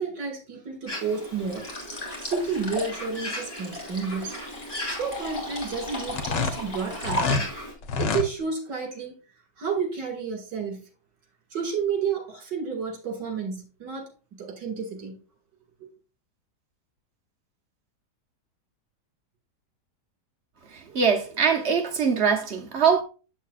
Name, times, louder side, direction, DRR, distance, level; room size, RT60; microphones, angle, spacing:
voice 1, 0.0-1.6 2.0-4.3 4.9-7.5 8.0-9.2 9.6-10.8 11.5-15.2 15.8-15.9, right 5 dB, 80° right, 2.7 m, -31 dB
Bird, 0.9-7.7, left 1 dB, 15° left, 3.5 m, -38 dB
sound 1, 1.5-7.7, left 1 dB, 30° left, 2.5 m, -36 dB
sound 2, 6.1-7.5 7.8-8.3, left 5 dB, 80° left, 1.6 m, -26 dB
voice 2, 20.7-23.0, right 6 dB, 50° right, 0.9 m, -23 dB
7.3 x 7.3 x 2.4 m
omnidirectional pair, 1.8 m